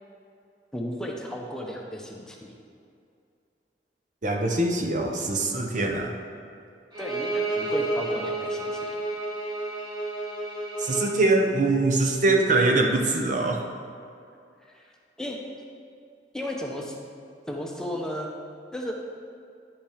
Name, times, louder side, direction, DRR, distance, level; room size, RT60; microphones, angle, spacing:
voice 1, 0.7-2.5 7.0-8.9 14.7-14.9 15.2-15.4 16.3-16.9 17.5-18.3 18.7-18.9, equal, 5° left, -1 dB, 0.8 m, -34 dB
voice 2, 4.2-6.1 10.8-13.6, right 2 dB, 45° right, 2 dB, 0.8 m, -23 dB
Bowed string instrument, 6.9-11.2, right 2 dB, 25° right, 1.5 m, -30 dB
10.5 x 5.9 x 5.0 m, 2.4 s
head